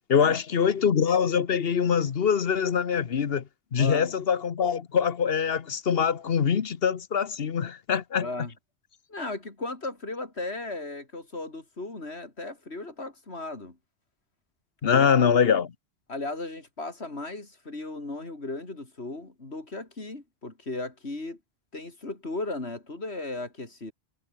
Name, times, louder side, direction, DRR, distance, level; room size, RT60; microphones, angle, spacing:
voice 1, 0.1-3.4 3.7-8.3 14.8-15.7, left 7 dB, 65° left, 1.3 m, -24 dB
voice 2, 3.8-4.1 8.2-8.5 9.1-13.8 14.9-15.1 16.1-21.4 21.7-23.9, left 2 dB, 85° left, 4.2 m, -36 dB
omnidirectional pair, 1.1 m